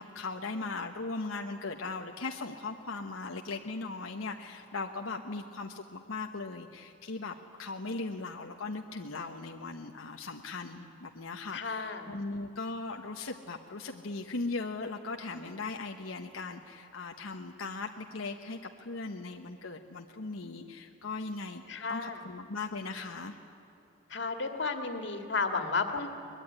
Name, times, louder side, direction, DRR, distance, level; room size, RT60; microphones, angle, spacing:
voice 1, 0.0-21.6 21.9-23.4, left 3 dB, 90° left, 3 dB, 1.1 m, -38 dB
voice 2, 11.5-12.1 21.7-22.2 24.1-26.1, left 4 dB, 60° left, 6 dB, 2.1 m, -33 dB
23.0 x 21.5 x 9.8 m, 2.9 s
head